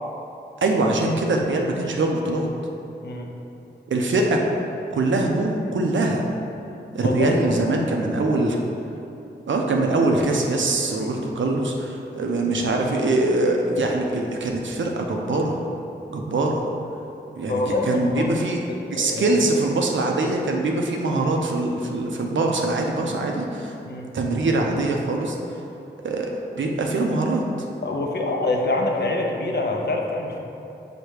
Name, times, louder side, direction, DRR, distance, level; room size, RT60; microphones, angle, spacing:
voice 1, 0.6-2.5 3.9-4.4 4.9-6.2 6.9-8.6 9.5-15.6 16.1-16.6 17.4-18.6 18.9-23.7 24.1-25.4 26.0-27.4, right 2 dB, 80° right, 1 dB, 0.5 m, -23 dB
voice 2, 7.0-7.3 7.6-8.1 11.0-11.2 17.5-18.5 19.0-19.3 23.8-24.1 27.8-30.4, left 2 dB, 60° left, 1 dB, 0.6 m, -26 dB
5.0 x 2.2 x 4.6 m, 2.8 s
cardioid pair, 40°, 19 cm